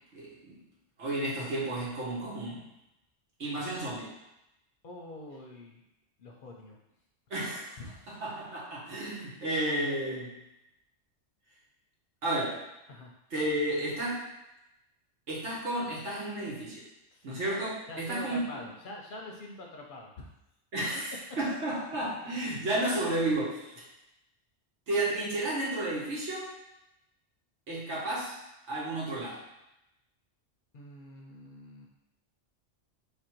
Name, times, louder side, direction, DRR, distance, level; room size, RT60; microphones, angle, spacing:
voice 1, 0.1-0.6 1.0-2.7 3.4-4.1 7.3-7.8 8.1-10.3 12.2-12.6 13.3-14.2 15.3-16.8 17.2-18.6 20.7-23.8 24.9-26.5 27.7-28.3 28.7-29.4, right 1 dB, 90° right, -6 dB, 1.5 m, -32 dB
voice 2, 4.8-5.8 6.2-6.8 7.8-8.2 12.9-13.1 17.1-17.4 17.9-20.3 30.7-31.9, left 1 dB, 55° left, -1 dB, 0.7 m, -45 dB
3.4 x 2.5 x 4.4 m, 0.89 s
omnidirectional pair, 1.2 m